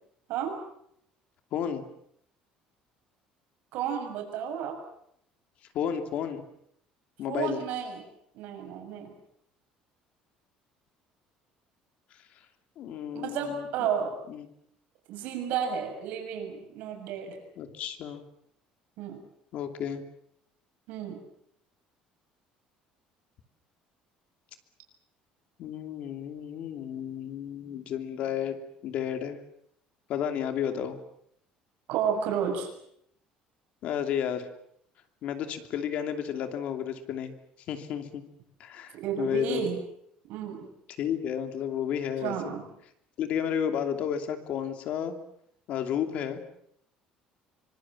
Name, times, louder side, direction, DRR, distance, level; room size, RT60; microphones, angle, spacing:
voice 1, 1.5-1.8 5.7-6.4 7.2-7.6 12.8-13.9 14.3-14.5 17.6-18.2 19.5-20.0 25.6-28.6 28.8-29.4 30.1-31.0 33.8-34.5 35.2-37.3 37.7-38.2 38.6-39.7 41.0-42.5 43.2-45.2 45.7-46.4, left 9 dB, 50° left, 7 dB, 2.9 m, -32 dB
voice 2, 3.7-4.8 7.3-8.0 8.3-9.1 13.1-14.1 15.1-17.4 19.0-19.2 20.9-21.2 31.9-32.7 38.9-39.8 40.3-40.7 42.2-42.6, right 8 dB, 65° right, 4 dB, 7.0 m, -32 dB
25.0 x 25.0 x 7.6 m, 0.72 s
cardioid pair, 170°, 3 cm